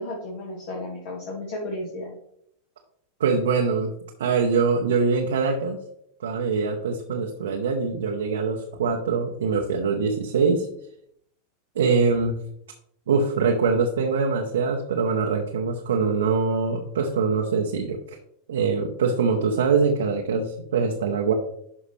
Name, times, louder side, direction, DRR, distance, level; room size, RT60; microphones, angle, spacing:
voice 1, 0.0-2.1, left 1 dB, 50° left, -2 dB, 1.7 m, -33 dB
voice 2, 3.2-3.9 4.2-5.8 6.2-10.7 11.7-12.4 13.1-18.0 18.5-21.3, right 5 dB, 65° right, 2 dB, 0.9 m, -23 dB
11.5 x 5.0 x 3.3 m, 0.72 s
figure-of-eight pair, 85°, 0 cm